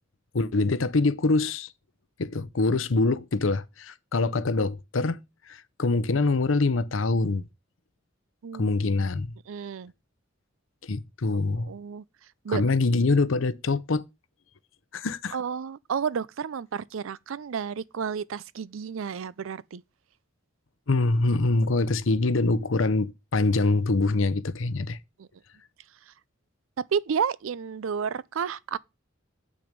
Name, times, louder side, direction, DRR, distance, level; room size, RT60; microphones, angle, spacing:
voice 1, 0.3-1.7 2.2-5.2 5.5-7.4 8.6-9.3 10.8-11.7 12.5-14.0 14.9-15.4 20.9-25.0, left 3 dB, 80° left, 0.8 m, -24 dB
voice 2, 8.4-8.8 9.5-9.9 11.6-12.0 12.4-12.6 15.3-19.8 25.2-25.3 26.9-28.8, right 6 dB, 90° right, 0.4 m, -31 dB
7.9 x 6.1 x 5.2 m
head